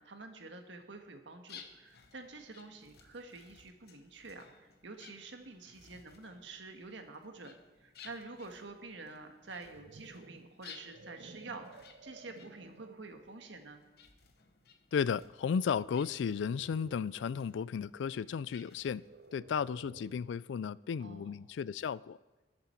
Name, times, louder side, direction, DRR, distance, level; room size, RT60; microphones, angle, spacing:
voice 1, 0.0-7.5 7.8-13.8 21.0-21.4, right 3 dB, 80° right, 1.5 m, -48 dB
sound 1, 1.5-19.4, left 6 dB, 55° left, 1.0 m, -58 dB
sound 2, 9.4-13.1 13.7-14.0 15.7-17.3 18.9-20.4, right 3 dB, 55° right, 0.6 m, -55 dB
voice 2, 14.9-19.0 19.3-22.2, left 6 dB, 80° left, 0.3 m, -34 dB
20.5 x 7.7 x 4.5 m
head